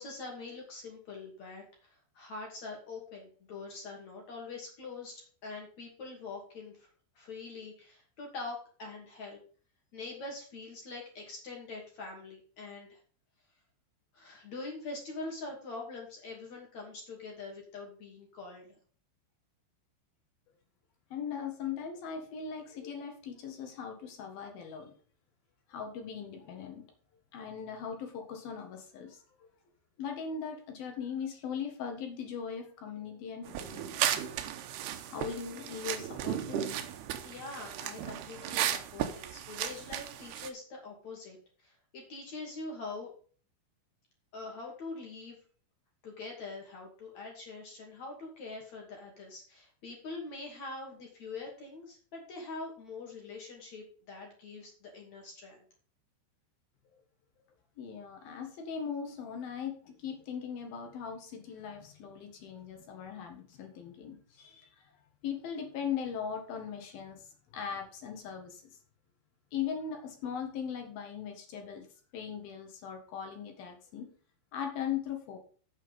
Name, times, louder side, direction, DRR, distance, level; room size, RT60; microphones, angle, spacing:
voice 1, 0.0-6.9 7.1-9.4 9.9-13.0 14.1-18.8 37.2-41.4 41.6-43.1 44.3-45.4 46.0-55.6, left 3 dB, 40° left, 1 dB, 3.1 m, -44 dB
voice 2, 21.1-24.9 25.7-26.8 27.3-29.5 30.0-34.2 35.1-36.7 57.8-64.9 65.2-67.2 67.5-68.7 69.5-71.9 72.1-74.1 74.5-75.4, left 7 dB, 60° left, 4 dB, 2.8 m, -39 dB
sound 1, 33.5-40.5, right 10 dB, 80° right, 2.3 m, -35 dB
8.8 x 8.2 x 5.4 m, 0.41 s
omnidirectional pair, 5.9 m